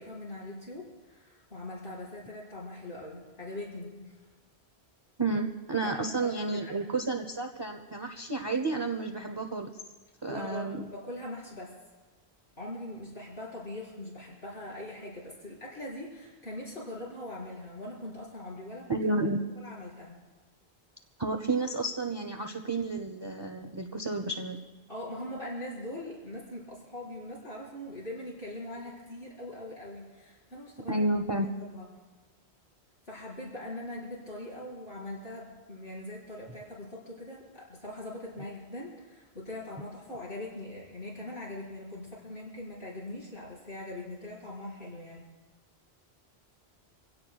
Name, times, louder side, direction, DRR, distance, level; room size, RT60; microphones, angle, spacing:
voice 1, 0.0-4.1 5.8-6.7 10.3-11.7 12.6-18.9 19.6-20.2 24.9-31.1 31.6-31.9 33.1-45.2, left 1 dB, 75° left, -6 dB, 5.2 m, -41 dB
voice 2, 5.2-9.7 10.2-10.9 18.9-19.4 21.2-24.6 30.9-31.5, right 2 dB, 25° right, 4 dB, 0.9 m, -31 dB
27.0 x 16.5 x 2.4 m, 1.3 s
omnidirectional pair, 1.1 m